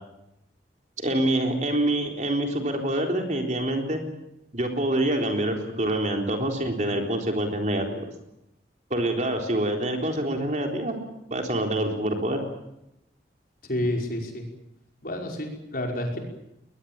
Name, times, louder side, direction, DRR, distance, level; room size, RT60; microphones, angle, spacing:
voice 1, 1.0-4.0 4.5-8.1 8.9-11.0 11.3-12.4, right 1 dB, 40° right, 3 dB, 3.9 m, -26 dB
voice 2, 13.7-14.5 15.0-16.2, left 1 dB, 50° left, 2 dB, 5.3 m, -29 dB
21.5 x 21.5 x 9.0 m, 0.86 s
head